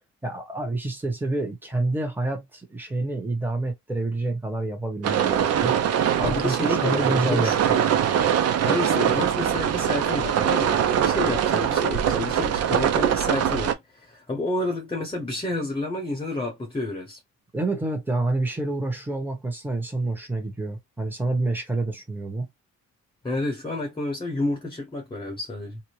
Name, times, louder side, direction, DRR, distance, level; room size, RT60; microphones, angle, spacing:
voice 1, 0.2-5.7 6.2-7.5 17.5-22.5, right 2 dB, 5° right, 1.1 m, -28 dB
sound 1, 5.0-13.7, right 9 dB, 55° right, 0.6 m, -22 dB
voice 2, 6.2-7.6 8.6-17.2 23.2-25.8, left 2 dB, 15° left, 0.9 m, -30 dB
2.7 x 2.2 x 3.0 m
cardioid pair, 90°, 30 cm